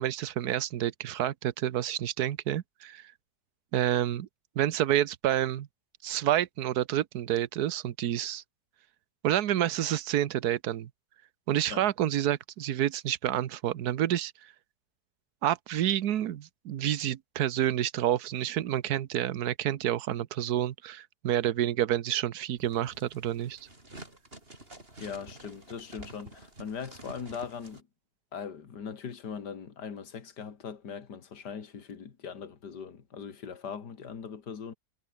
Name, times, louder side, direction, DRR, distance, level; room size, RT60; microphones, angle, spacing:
voice 1, 0.0-3.1 3.7-4.3 4.5-5.7 6.0-8.4 9.2-10.9 11.5-14.3 15.4-23.7, right 12 dB, 65° right, 1.4 m, -29 dB
sound 1, 22.6-27.8, right 2 dB, 30° right, 5.4 m, -49 dB
voice 2, 25.0-27.8 28.3-34.8, left 6 dB, 70° left, 2.6 m, -40 dB
omnidirectional pair, 1.9 m